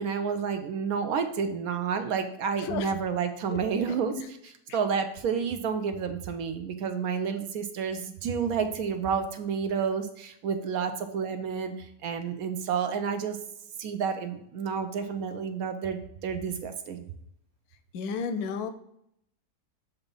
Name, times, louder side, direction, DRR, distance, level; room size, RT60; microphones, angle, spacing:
voice 1, 0.0-4.1 4.7-13.4 13.8-17.0, right 6 dB, 70° right, 7 dB, 1.0 m, -30 dB
voice 2, 2.6-2.9 3.5-3.6 3.9-4.3 4.7-4.8 17.9-18.7, left 6 dB, 75° left, 9 dB, 1.1 m, -33 dB
7.0 x 2.7 x 5.3 m, 0.74 s
omnidirectional pair, 1.7 m